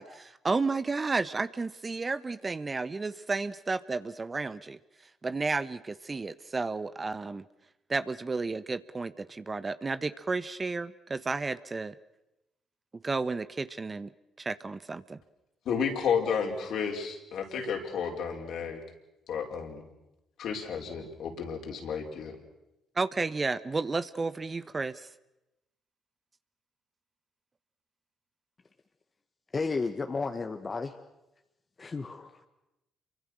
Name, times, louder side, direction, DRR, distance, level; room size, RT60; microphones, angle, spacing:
voice 1, 0.0-4.8 5.2-7.4 7.9-11.9 13.0-14.1 14.4-15.2 22.9-25.1, right 3 dB, 30° right, 14 dB, 1.2 m, -32 dB
voice 2, 15.6-18.8 19.3-19.8 20.4-22.4, left 6 dB, 65° left, 2 dB, 5.1 m, -32 dB
voice 3, 29.5-31.0 31.8-32.4, left 4 dB, 35° left, 5 dB, 1.9 m, -32 dB
28.0 x 24.0 x 6.5 m, 0.91 s
hypercardioid pair, 50°, 0 cm